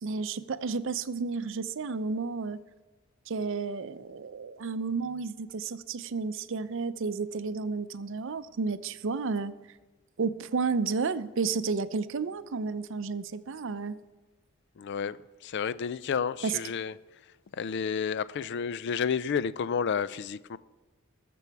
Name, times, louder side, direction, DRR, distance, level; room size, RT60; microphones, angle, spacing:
voice 1, 0.0-2.6 3.3-9.5 10.2-14.0 16.4-16.6, right 4 dB, 65° right, 0.5 m, -32 dB
voice 2, 14.8-15.2 15.4-16.9 17.5-20.6, left 6 dB, 55° left, 0.4 m, -31 dB
20.5 x 6.9 x 4.6 m
head